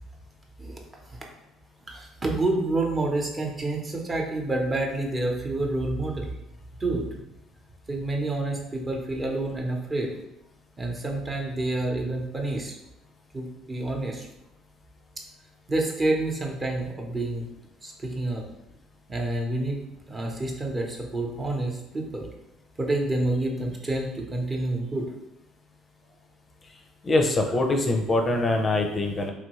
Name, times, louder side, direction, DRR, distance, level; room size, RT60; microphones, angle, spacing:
voice 1, 1.9-6.3 6.8-7.0 7.9-10.1 10.8-12.8 13.3-14.3 15.7-17.4 17.8-18.4 19.1-19.8 20.1-22.3 22.8-25.1, right 2 dB, 30° right, 0 dB, 0.8 m, -28 dB
voice 2, 27.0-29.3, left 2 dB, 35° left, 3 dB, 0.4 m, -23 dB
3.0 x 2.6 x 3.0 m, 0.92 s
hypercardioid pair, 60°, 0 cm